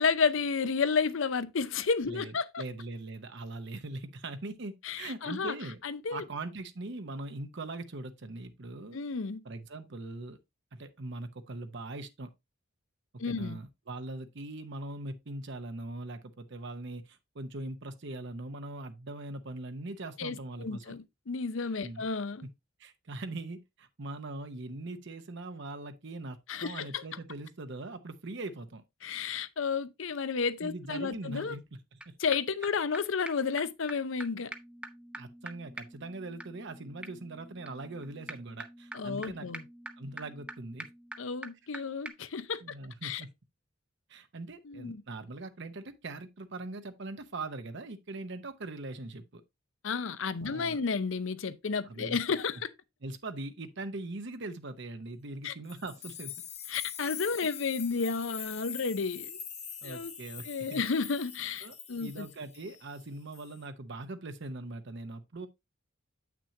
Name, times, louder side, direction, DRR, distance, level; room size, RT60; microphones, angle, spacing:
voice 1, 0.0-2.6 4.8-5.6 5.8-6.2 8.9-9.4 13.2-13.6 20.2-22.5 26.5-27.0 29.0-31.6 32.2-34.5 38.9-39.6 41.2-42.6 43.0-43.2 44.6-45.0 49.8-52.7 55.4-55.5 56.7-59.4 59.8-60.1 60.4-62.3, left 5 dB, 65° left, 0.6 m, -32 dB
voice 2, 2.1-5.8 6.1-9.0 9.4-10.4 10.7-12.3 13.3-21.0 21.8-22.1 22.4-22.5 22.8-28.8 30.6-32.1 35.2-39.5 40.0-40.9 42.6-43.3 44.1-49.4 50.4-50.8 51.8-52.2 53.0-56.3 57.4-57.5 59.8-60.8 61.6-65.5, right 2 dB, 60° right, 0.8 m, -41 dB
sound 1, 32.0-32.1 32.3-32.4 32.6-32.7 32.9-33.0 33.3-33.4 33.6-33.7 33.9-34.0 34.2-34.3 34.5-41.8 42.1-42.2, right 1 dB, 5° right, 0.6 m, -45 dB
sound 2, 55.7-63.0 63.3-63.7, left 8 dB, 30° left, 0.9 m, -43 dB
8.5 x 6.1 x 2.7 m
head